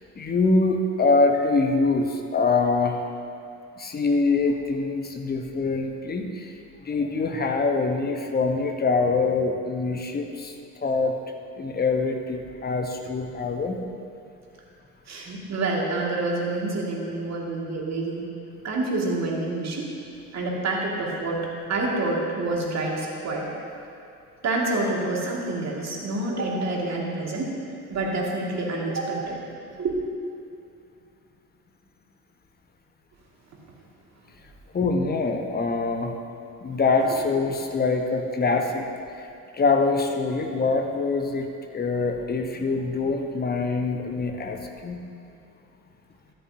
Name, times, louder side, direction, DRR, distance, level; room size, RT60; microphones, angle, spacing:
voice 1, 0.2-3.0 3.8-6.5 6.8-10.5 10.8-11.1 11.5-13.8 34.7-36.1 36.6-38.8 39.2-39.3 39.6-45.0, left 3 dB, 20° left, 4 dB, 1.0 m, -24 dB
voice 2, 15.1-18.3 18.6-19.9 20.3-23.5 24.4-27.5 27.9-29.4 29.7-30.0 37.0-37.2, right 2 dB, 35° right, -2 dB, 2.3 m, -27 dB
13.5 x 10.0 x 2.8 m, 2.6 s
figure-of-eight pair, 60°, 45 cm